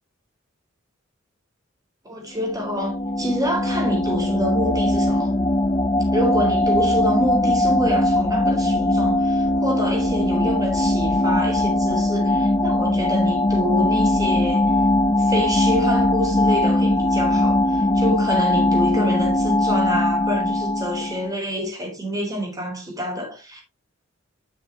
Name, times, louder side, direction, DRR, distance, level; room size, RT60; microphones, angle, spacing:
voice 1, 2.0-5.3 6.1-14.7 15.2-23.6, equal, 20° right, 4.1 m, -27 dB
sound 1, 2.4-21.3, left 1 dB, 20° left, 0.7 m, -20 dB
10.5 x 7.4 x 3.0 m
head